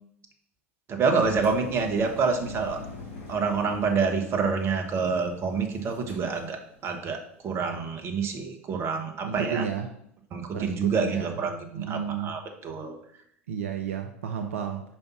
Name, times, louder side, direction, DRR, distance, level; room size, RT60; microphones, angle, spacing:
voice 1, 0.9-2.8 3.3-9.6 10.3-13.0, right 5 dB, 35° right, 4 dB, 1.2 m, -27 dB
Engine, 1.2-7.0, left 3 dB, 65° left, 2.2 m, -43 dB
voice 2, 9.2-9.9 10.5-11.4 11.8-12.3 13.5-14.8, right 7 dB, 70° right, 5 dB, 0.6 m, -32 dB
5.1 x 4.4 x 6.0 m, 0.71 s
figure-of-eight pair, 80°, 7 cm